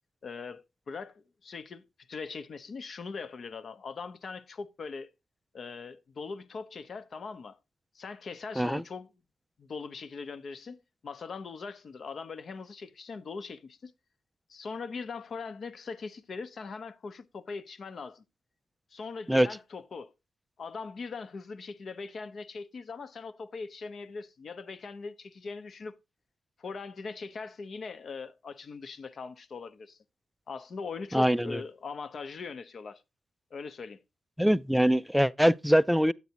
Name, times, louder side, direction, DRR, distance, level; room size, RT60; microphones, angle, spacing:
voice 1, 0.2-5.1 5.5-7.6 7.9-9.1 9.6-13.9 14.5-18.2 18.9-20.1 20.6-25.9 26.6-30.0 30.5-33.0 33.5-34.0, left 4 dB, 50° left, 0.8 m, -41 dB
voice 2, 31.1-31.6 34.4-36.1, equal, ahead, 0.3 m, -23 dB
9.4 x 8.1 x 2.9 m
cardioid pair, 85°, 0 cm